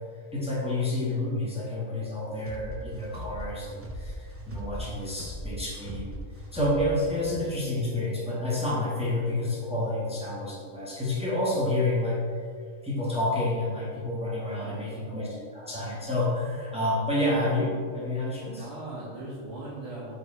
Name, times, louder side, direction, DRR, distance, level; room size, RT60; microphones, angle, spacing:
voice 1, 0.3-4.1 4.5-6.2 6.5-12.2 12.8-18.7, left 1 dB, 5° right, -6 dB, 1.2 m, -29 dB
sound 1, 2.4-7.5, equal, 20° right, 0.3 m, -39 dB
voice 2, 14.4-14.9 18.4-20.1, right 2 dB, 60° right, -9 dB, 1.5 m, -39 dB
5.1 x 4.8 x 4.2 m, 2.1 s
omnidirectional pair, 1.4 m